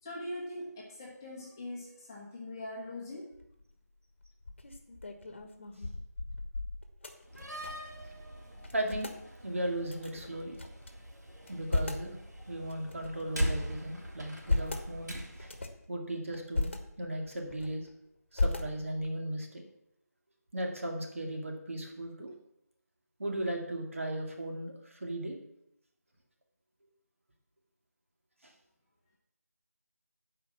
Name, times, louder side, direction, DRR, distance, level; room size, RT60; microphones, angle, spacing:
voice 1, 0.0-3.3, left 1 dB, 10° left, -5 dB, 1.2 m, -42 dB
sound 1, 3.3-3.7 4.2-8.0 8.2-8.3 8.6-9.2 9.9-10.9 11.4-12.1 12.7-13.6 14.2-14.9 15.4-15.9 16.3-16.8 17.3-17.9 18.3-19.1, left 2 dB, 45° left, 1.3 m, -35 dB
Slam, 7.2-15.6, equal, 90° right, 3.2 m, -40 dB
voice 2, 8.7-9.1 9.4-10.6 11.5-12.2 12.5-15.5 15.9-17.9 18.3-19.6 20.5-22.4 23.2-25.4 28.4-28.5, right 1 dB, 50° right, 1 dB, 2.5 m, -36 dB
12.0 x 5.1 x 7.2 m, 0.77 s
figure-of-eight pair, 170°, 9 cm